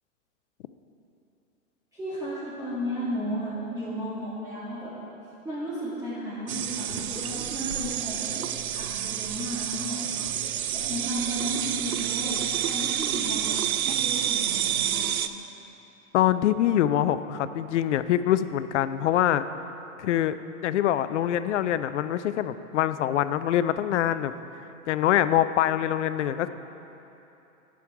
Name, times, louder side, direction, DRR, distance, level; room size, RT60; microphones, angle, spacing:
voice 1, 1.9-4.9 5.4-8.4 8.7-10.4 10.7-13.5 13.8-15.0, equal, 10° right, -12 dB, 1.8 m, -34 dB
sound 1, 6.5-15.3, right 10 dB, 80° right, 0.6 m, -29 dB
voice 2, 16.1-19.4 20.0-24.3 24.9-26.5, left 11 dB, 55° left, 13 dB, 0.5 m, -24 dB
10.0 x 6.3 x 4.6 m, 2.9 s
hypercardioid pair, 115°, 42 cm